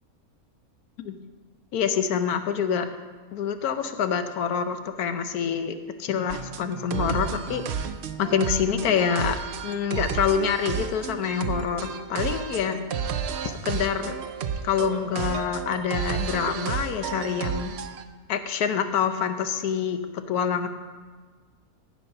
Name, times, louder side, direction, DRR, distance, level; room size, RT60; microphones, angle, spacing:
voice 1, 1.7-2.9 3.3-5.7 6.0-7.9 8.2-9.4 9.6-12.8 13.6-14.1 14.6-17.8 18.3-20.7, left 7 dB, 90° left, 9 dB, 1.3 m, -26 dB
sound 1, 6.3-18.0, right 7 dB, 60° right, 0.7 m, -32 dB
15.5 x 5.9 x 5.4 m, 1.5 s
omnidirectional pair, 1.6 m